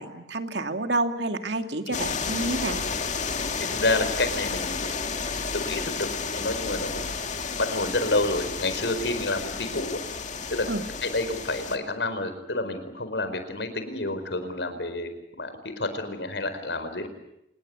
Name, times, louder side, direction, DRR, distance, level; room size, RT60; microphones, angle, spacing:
voice 1, 0.0-2.8 10.7-10.8, right 2 dB, 85° right, 7 dB, 2.4 m, -29 dB
sound 1, 1.9-11.8, left 5 dB, 45° left, 2.2 m, -31 dB
voice 2, 3.6-4.8 5.5-6.1 6.3-6.9 7.6-10.0 10.5-10.7 11.0-15.1 15.4-17.1, left 2 dB, 85° left, 10 dB, 4.7 m, -29 dB
27.0 x 20.0 x 9.7 m, 0.83 s
head